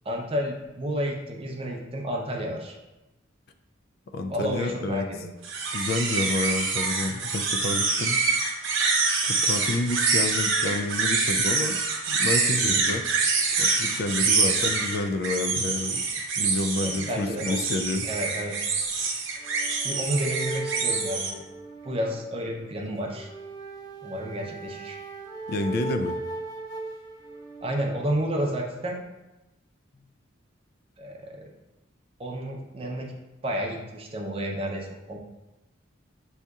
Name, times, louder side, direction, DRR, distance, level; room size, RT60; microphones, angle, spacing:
voice 1, 0.0-2.7 4.3-5.3 12.5-12.8 16.8-17.6 18.0-18.6 19.8-21.4 21.8-23.3 24.0-25.0 27.6-29.0 31.0-31.5 32.2-33.1 33.4-35.2, equal, 30° right, 0 dB, 0.6 m, -31 dB
voice 2, 4.1-5.0 5.7-8.2 9.2-11.8 12.1-13.0 13.6-16.0 16.4-18.1 25.5-26.1, left 3 dB, 50° left, 6 dB, 0.3 m, -29 dB
sound 1, 5.4-21.3, right 4 dB, 85° right, 0.8 m, -25 dB
sound 2, 19.4-28.2, right 3 dB, 20° left, 0.8 m, -38 dB
6.2 x 2.8 x 2.3 m, 1.0 s
head